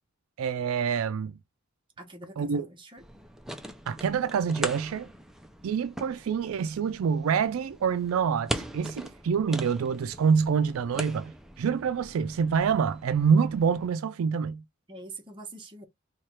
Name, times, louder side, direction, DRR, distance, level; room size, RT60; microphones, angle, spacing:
voice 1, 0.4-1.3 2.4-2.7 3.9-5.1 5.6-14.6, right 6 dB, 80° right, 0.4 m, -26 dB
voice 2, 2.0-3.0 14.9-15.9, right 2 dB, 25° right, 1.0 m, -44 dB
sound 1, 3.0-13.9, right 1 dB, ahead, 0.4 m, -40 dB
3.2 x 2.3 x 4.2 m
head